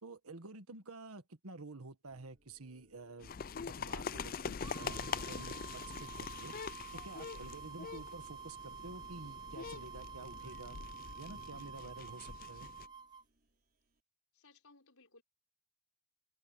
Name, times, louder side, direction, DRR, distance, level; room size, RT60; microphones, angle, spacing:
voice 1, 0.0-3.3 3.7-6.5 6.9-10.8 11.2-12.7, right 3 dB, 80° right, 1.6 m, -50 dB
sound 1, 2.0-14.0, right 1 dB, 40° right, 5.7 m, -73 dB
sound 2, 3.2-12.9, left 5 dB, 40° left, 0.5 m, -44 dB
sound 3, 4.6-13.2, right 7 dB, 20° right, 0.8 m, -49 dB
voice 2, 14.3-15.2, left 3 dB, 75° left, 4.6 m, -64 dB
open air
head